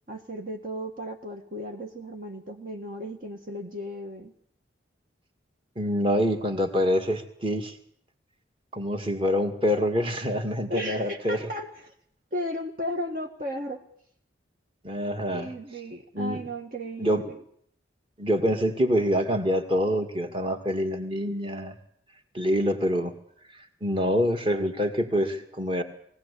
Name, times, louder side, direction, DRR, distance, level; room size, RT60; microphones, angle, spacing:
voice 1, 0.1-4.3 10.7-11.9 12.3-13.8 15.3-17.4, equal, 45° right, 2 dB, 1.7 m, -35 dB
voice 2, 5.8-7.7 8.7-11.5 14.8-15.5 16.1-16.4 17.0-17.2 18.2-21.7 22.3-23.1 23.8-25.8, equal, 25° right, 5 dB, 2.2 m, -26 dB
21.5 x 17.0 x 8.5 m, 0.66 s
head